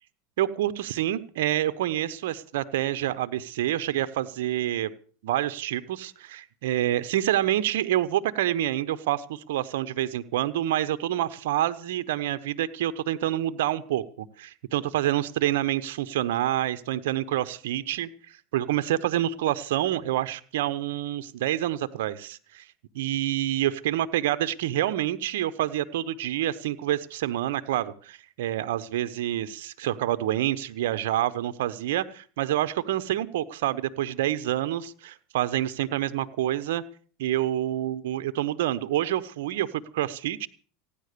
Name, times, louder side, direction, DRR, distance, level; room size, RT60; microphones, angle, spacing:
voice 1, 0.4-4.9 5.2-22.7 22.9-36.8 37.2-40.5, right 13 dB, 80° right, 13 dB, 1.0 m, -27 dB
15.5 x 10.5 x 6.8 m, 0.43 s
supercardioid pair, 115°, 0 cm